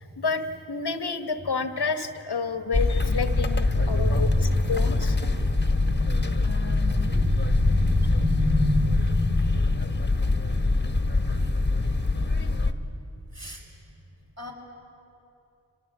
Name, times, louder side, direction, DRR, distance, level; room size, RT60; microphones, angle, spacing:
voice 1, 0.0-5.2, left 4 dB, 55° left, 8 dB, 1.2 m, -30 dB
sound 1, 2.7-12.7, left 2 dB, 20° left, 1.5 m, -24 dB
voice 2, 3.3-4.7 5.4-11.9 13.3-13.7 14.4-14.5, left 1 dB, 30° right, 0 dB, 5.7 m, -30 dB
sound 2, 3.6-7.1, equal, 15° right, 4.3 m, -39 dB
26.0 x 19.0 x 8.4 m, 2.7 s
cardioid pair, 45°, 48 cm